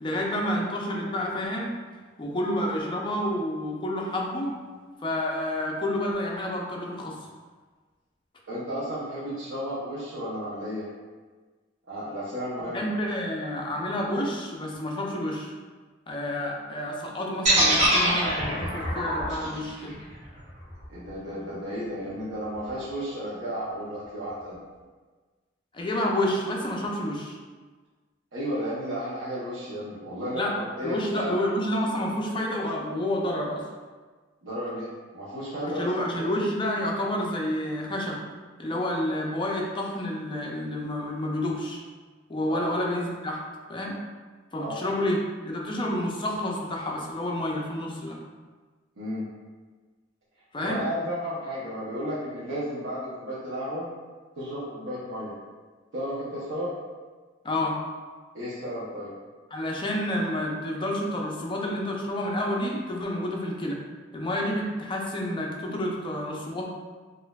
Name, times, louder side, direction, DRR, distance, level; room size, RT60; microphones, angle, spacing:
voice 1, 0.0-1.7 2.2-4.6 5.0-7.2 12.7-15.5 16.1-20.0 25.7-27.4 30.3-30.5 30.8-33.7 35.7-38.2 38.6-41.8 42.3-43.4 43.7-44.0 44.5-48.2 50.5-50.8 57.4-57.8 59.5-63.8 64.1-66.7, left 1 dB, 25° left, -1 dB, 0.5 m, -29 dB
voice 2, 8.5-10.9 11.9-12.8 20.9-24.6 28.3-31.3 34.4-35.9 36.2-36.4 42.5-42.7 44.5-44.8 49.0-49.3 50.6-53.9 54.4-55.3 55.9-56.7 58.3-59.1, equal, 75° right, -10 dB, 0.8 m, -33 dB
sound 1, 17.5-21.5, right 1 dB, 40° right, 1.4 m, -25 dB
4.2 x 2.6 x 2.3 m, 1.4 s
head